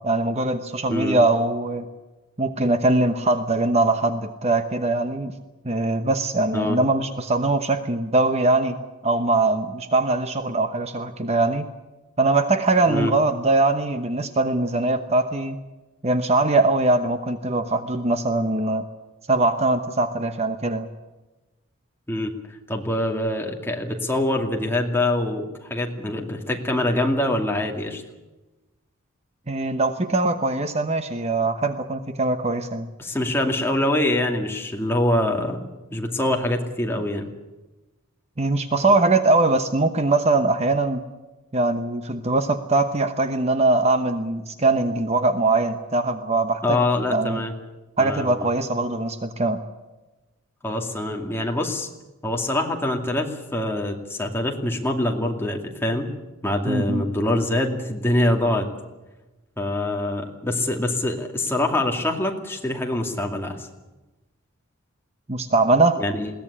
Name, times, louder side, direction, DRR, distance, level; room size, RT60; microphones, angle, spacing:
voice 1, 0.0-1.9 2.4-5.3 5.6-8.8 9.0-11.7 12.2-15.6 16.0-18.9 19.3-20.9 29.5-32.9 38.4-41.0 41.5-46.8 47.1-47.4 48.0-49.6 56.7-57.0 65.3-66.0, right 2 dB, 30° right, 8 dB, 1.0 m, -22 dB
voice 2, 22.1-28.0 33.0-37.3 46.6-47.5 48.0-48.5 50.6-51.9 52.2-56.1 56.4-58.7 59.6-63.7 66.0-66.3, left 1 dB, 10° left, 2 dB, 2.4 m, -24 dB
21.5 x 17.5 x 9.9 m, 1.1 s
head